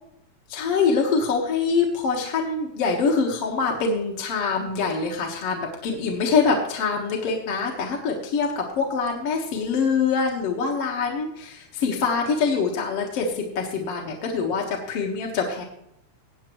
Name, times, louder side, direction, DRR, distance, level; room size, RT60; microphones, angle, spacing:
voice 1, 0.5-15.6, left 5 dB, 55° left, 0 dB, 2.3 m, -24 dB
17.0 x 9.1 x 3.1 m, 0.77 s
omnidirectional pair, 3.4 m